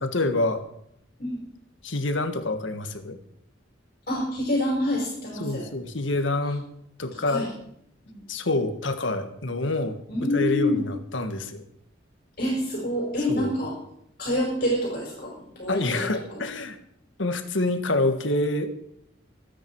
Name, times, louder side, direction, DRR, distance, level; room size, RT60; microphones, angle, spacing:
voice 1, 0.0-0.6 1.8-3.2 5.4-6.7 7.0-7.5 8.3-10.0 10.3-11.6 13.3-13.5 15.7-16.8 17.2-18.7, left 2 dB, 70° left, 8 dB, 1.6 m, -27 dB
voice 2, 4.1-5.6 7.2-7.5 8.0-8.2 10.1-10.8 12.4-13.7 14.2-16.4, left 1 dB, 50° left, -3 dB, 5.1 m, -27 dB
24.5 x 9.4 x 4.7 m, 0.75 s
head